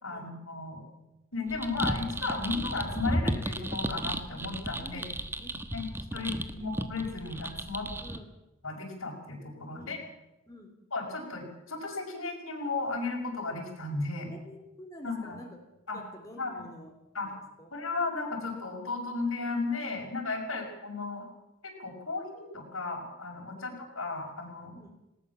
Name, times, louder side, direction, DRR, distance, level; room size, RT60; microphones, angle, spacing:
voice 1, 0.0-0.8 1.3-5.0 5.7-7.9 8.6-10.0 10.9-14.3 15.0-15.4 15.9-16.0 16.4-16.6 17.1-17.3 17.7-21.3 21.6-24.7, left 3 dB, 85° left, 1 dB, 6.0 m, -35 dB
sound 1, 1.5-8.2, right 1 dB, 10° right, 1.2 m, -34 dB
voice 2, 6.1-6.7 8.0-8.3 9.7-10.0 10.5-10.7 14.3-15.6 15.9-16.9 17.2-17.7 20.5-20.7 23.5-23.7 24.7-24.9, left 1 dB, 15° left, 1 dB, 3.6 m, -49 dB
19.0 x 19.0 x 7.2 m, 0.93 s
head